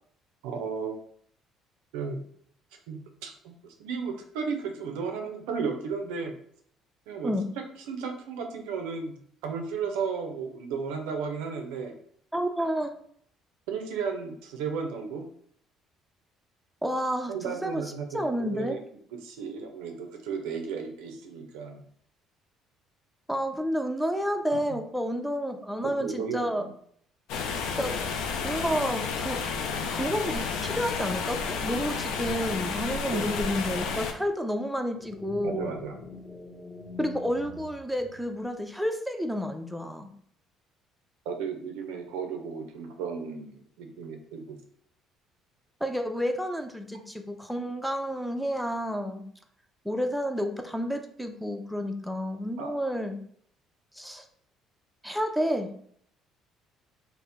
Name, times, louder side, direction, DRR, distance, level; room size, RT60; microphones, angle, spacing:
voice 1, 0.4-0.9 1.9-2.2 2.9-3.5 3.8-6.4 7.1-7.3 7.9-9.1 9.4-11.9 13.7-15.2 17.3-18.8 19.2-21.8 24.5-24.8 26.0-26.7 33.1-33.3 35.4-36.0 41.3-44.6 52.6-52.7, right 5 dB, 75° right, 3 dB, 0.4 m, -34 dB
voice 2, 12.3-12.9 16.8-17.8 18.1-18.8 23.3-26.7 27.8-28.0 28.4-29.4 29.9-35.7 37.0-40.1 45.8-49.2 49.8-53.2 53.9-54.3 55.0-55.7, equal, ahead, 4 dB, 0.4 m, -30 dB
sound 1, 27.3-34.1, left 5 dB, 70° left, 0.3 m, -31 dB
sound 2, 35.0-38.6, left 3 dB, 25° left, 0.9 m, -45 dB
2.7 x 2.0 x 3.4 m, 0.63 s
hypercardioid pair, 55°, 0 cm